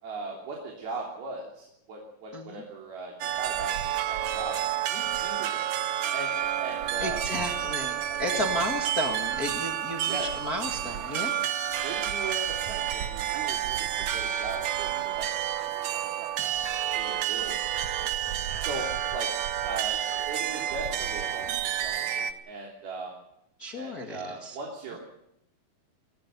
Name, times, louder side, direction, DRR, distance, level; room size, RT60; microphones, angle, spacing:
voice 1, 0.0-4.6 4.9-5.6 6.1-7.2 8.3-8.4 10.1-10.3 11.8-15.3 16.0-16.6 16.9-17.7 18.0-18.2 18.6-18.9 19.1-19.3 19.6-23.1 23.7-25.0, right 3 dB, 85° right, -1 dB, 5.2 m, -39 dB
sound 1, 3.2-22.3, right 10 dB, 70° right, 1.8 m, -30 dB
voice 2, 7.0-11.5 23.6-24.6, left 1 dB, 35° left, 1 dB, 1.7 m, -33 dB
23.0 x 18.0 x 6.9 m, 0.80 s
omnidirectional pair, 4.2 m